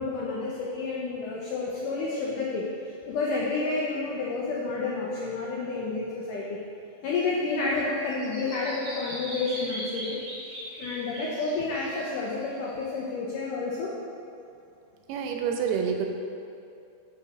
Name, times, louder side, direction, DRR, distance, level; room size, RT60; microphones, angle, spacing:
voice 1, 0.0-6.6 7.0-10.2 10.8-14.0, left 3 dB, 85° left, -4 dB, 1.8 m, -30 dB
Bird vocalization bird call bird song, 7.1-13.0, equal, 50° right, 2.3 m, -40 dB
voice 2, 15.1-16.1, right 7 dB, 80° right, 3 dB, 2.5 m, -27 dB
7.8 x 5.7 x 6.0 m, 2.6 s
omnidirectional pair, 4.8 m